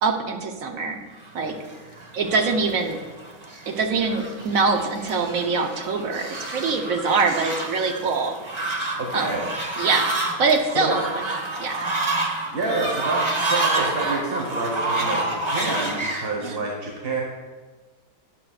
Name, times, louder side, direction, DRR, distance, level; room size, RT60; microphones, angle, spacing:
voice 1, 0.0-1.0 1.3-1.5 2.1-3.0 3.7-8.4 9.1-9.5 9.8-10.1 10.4-11.1 11.6-11.9 16.4-16.6, right 4 dB, 60° right, 4 dB, 1.2 m, -23 dB
Fowl, 1.4-16.3, right 2 dB, 20° right, 0.9 m, -28 dB
voice 2, 9.0-9.4 10.7-11.0 12.5-17.2, right 2 dB, 40° right, -2 dB, 1.4 m, -28 dB
12.0 x 9.5 x 2.4 m, 1.3 s
omnidirectional pair, 1.7 m